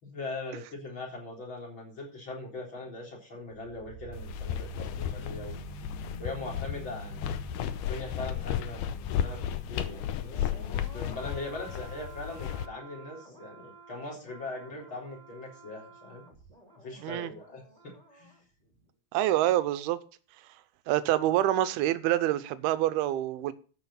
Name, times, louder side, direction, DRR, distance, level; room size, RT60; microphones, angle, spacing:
voice 1, 0.0-5.6 6.2-7.4 7.9-16.3 16.8-18.4, left 2 dB, 30° left, 4.3 m, -41 dB
sound 1, 3.5-18.4 18.7-18.8, right 3 dB, 10° right, 2.6 m, -47 dB
sound 2, 4.1-12.7, left 10 dB, 80° left, 1.9 m, -34 dB
voice 2, 17.0-17.3 19.1-20.0 20.9-23.5, right 13 dB, 80° right, 2.6 m, -26 dB
13.5 x 6.5 x 5.7 m
omnidirectional pair, 4.5 m